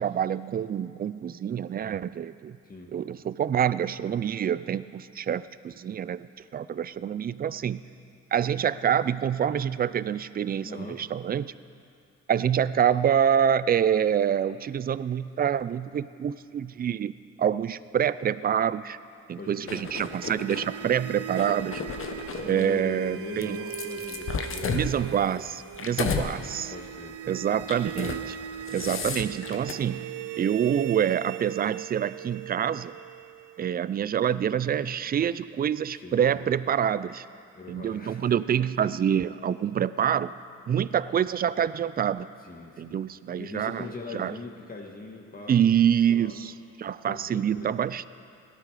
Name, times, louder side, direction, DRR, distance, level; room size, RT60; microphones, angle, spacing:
voice 1, 0.0-2.6 2.9-6.3 6.5-7.8 8.3-11.5 12.3-17.1 17.4-19.0 19.3-21.8 22.4-23.6 24.7-26.7 27.2-28.4 28.7-30.1 30.4-32.9 33.6-37.3 37.7-40.3 40.7-42.3 42.8-44.3 45.5-48.1, right 9 dB, 30° right, 16 dB, 0.4 m, -26 dB
voice 2, 10.6-11.0 19.4-20.2 20.8-20.9 22.4-25.2 25.9-27.6 35.9-36.5 37.5-38.3 42.4-43.0 43.4-46.4 47.0-47.7, left 3 dB, 30° left, 1 dB, 1.6 m, -42 dB
sound 1, 19.4-34.3, right 10 dB, 80° right, 0.7 m, -39 dB
sound 2, 19.7-20.7 21.3-22.8 23.4-26.3 26.7-27.0 27.6-28.2 28.5-29.7, left 5 dB, 45° left, 1.1 m, -33 dB
17.0 x 12.0 x 4.9 m, 2.6 s
cardioid pair, 90°, 30 cm